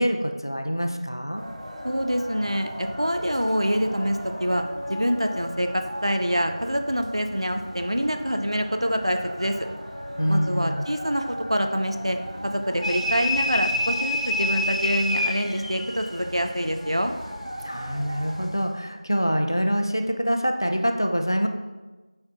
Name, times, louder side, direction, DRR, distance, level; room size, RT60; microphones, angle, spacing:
voice 1, 0.0-1.4 10.2-10.9 17.6-21.5, equal, 40° left, 5 dB, 0.5 m, -25 dB
sound 1, 1.4-18.5, equal, 85° right, 1.9 m, -37 dB
voice 2, 1.8-9.6 10.3-12.2 12.4-17.1, equal, 50° right, 6 dB, 0.6 m, -26 dB
sound 2, 12.8-16.2, left 1 dB, 75° left, 1.0 m, -27 dB
8.6 x 4.4 x 3.7 m, 1.2 s
figure-of-eight pair, 180°, 4 cm